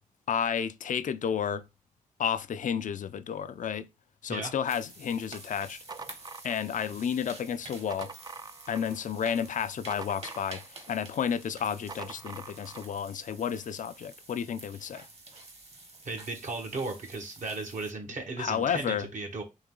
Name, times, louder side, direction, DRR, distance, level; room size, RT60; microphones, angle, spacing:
voice 1, 0.3-1.6 2.2-3.9 4.2-5.8 6.4-8.1 8.7-15.0 18.4-19.1, left 8 dB, 70° left, 0.4 m, -31 dB
sound 1, 4.7-17.9, right 2 dB, 50° right, 1.3 m, -49 dB
sound 2, 5.6-7.0 7.6-9.0 9.4-10.9 11.6-12.9, right 4 dB, 30° right, 0.3 m, -45 dB
voice 2, 16.0-19.4, right 3 dB, 70° right, 1.2 m, -36 dB
3.9 x 3.0 x 3.7 m
cardioid pair, 65°, 14 cm